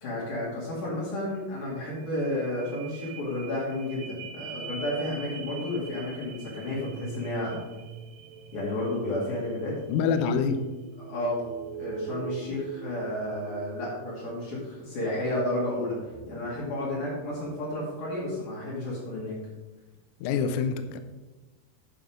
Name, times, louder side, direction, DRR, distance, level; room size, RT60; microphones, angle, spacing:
voice 1, 0.0-7.6 8.5-9.8 11.0-11.4 11.8-19.4, left 1 dB, 55° left, -6 dB, 3.7 m, -32 dB
sound 1, 1.4-1.5 1.7-17.7 18.1-18.2, right 6 dB, 70° right, 2.2 m, -43 dB
voice 2, 9.9-10.6 20.2-21.0, left 6 dB, 85° left, 9 dB, 1.7 m, -26 dB
10.5 x 6.9 x 5.1 m, 1.2 s
omnidirectional pair, 4.6 m